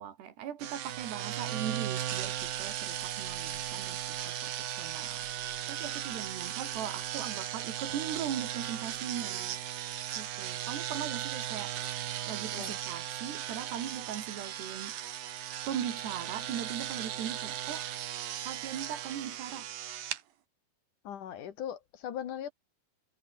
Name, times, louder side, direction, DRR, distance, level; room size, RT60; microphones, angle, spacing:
voice 1, 0.0-9.6 10.2-12.0 12.3-14.9 15.7-17.9 18.4-19.7, right 9 dB, 85° right, 4.8 m, -39 dB
sound 1, 0.6-20.2, right 11 dB, 65° right, 3.2 m, -37 dB
voice 2, 21.0-22.5, left 9 dB, 60° left, 2.8 m, -39 dB
omnidirectional pair, 4.7 m